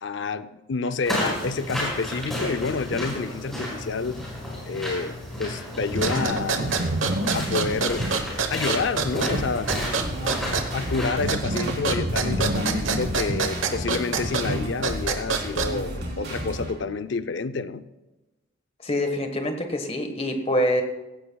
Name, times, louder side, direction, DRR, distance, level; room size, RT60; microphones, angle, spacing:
voice 1, 0.0-4.2 4.7-6.8 7.3-8.1 8.5-9.7 10.2-10.4 10.7-17.9, left 4 dB, 65° left, 0.5 m, -29 dB
sound 1, 1.0-11.1, equal, ahead, 4.7 m, -32 dB
sound 2, 5.9-16.0, right 3 dB, 75° right, 1.1 m, -27 dB
sound 3, 9.3-16.7, right 1 dB, 55° right, 3.5 m, -33 dB
voice 2, 18.8-20.8, left 1 dB, 30° left, 1.3 m, -25 dB
16.5 x 15.5 x 2.3 m
head